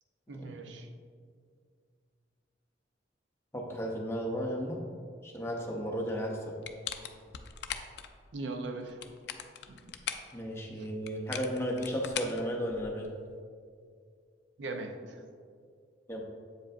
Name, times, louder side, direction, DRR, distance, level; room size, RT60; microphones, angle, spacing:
voice 1, 0.3-0.9 8.3-9.1 9.7-9.9 10.8-10.9 14.6-15.3, right 3 dB, 80° right, 6 dB, 0.5 m, -40 dB
voice 2, 3.5-4.8 5.2-6.6 10.3-13.1 16.1-16.2, equal, 15° left, 0 dB, 0.6 m, -34 dB
sound 1, 6.6-8.1 8.8-10.3 11.1-13.1, left 9 dB, 60° left, 0.4 m, -40 dB
7.6 x 5.0 x 2.5 m, 2.2 s
head